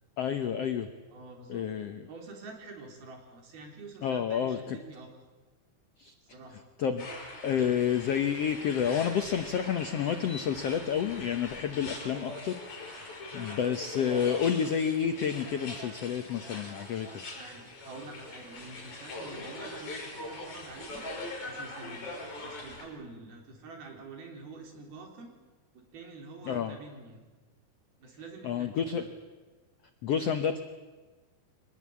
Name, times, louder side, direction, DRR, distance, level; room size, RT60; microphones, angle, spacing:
voice 1, 0.2-0.9 1.5-2.0 4.0-4.8 6.0-6.1 6.8-7.1 7.4-17.1 26.5-26.8 28.4-29.1 30.0-30.6, left 8 dB, 85° left, 8 dB, 1.4 m, -30 dB
voice 2, 1.1-1.6 2.1-5.2 6.3-6.6 17.3-21.1 21.5-22.1 22.4-25.3 25.7-27.2 28.0-29.1, right 3 dB, 85° right, 2 dB, 5.5 m, -47 dB
sound 1, 7.0-22.9, left 2 dB, 50° left, 6.9 m, -42 dB
24.5 x 20.0 x 8.5 m, 1.3 s
omnidirectional pair, 4.3 m